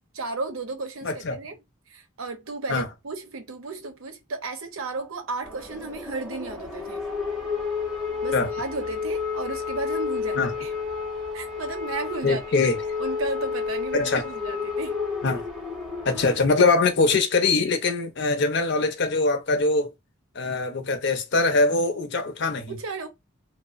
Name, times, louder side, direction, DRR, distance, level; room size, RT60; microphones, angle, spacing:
voice 1, 0.1-1.5 1.9-7.0 8.2-10.7 11.3-12.4 13.0-15.0 22.7-23.1, right 3 dB, 85° right, 0.7 m, -33 dB
voice 2, 1.0-1.4 2.7-2.9 8.3-8.5 10.4-10.5 12.2-12.8 13.9-14.2 15.2-15.4 16.1-19.9 20.4-22.8, left 3 dB, 60° left, 0.6 m, -22 dB
sound 1, 5.4-16.4, left 5 dB, ahead, 0.8 m, -31 dB
3.0 x 2.0 x 2.4 m
head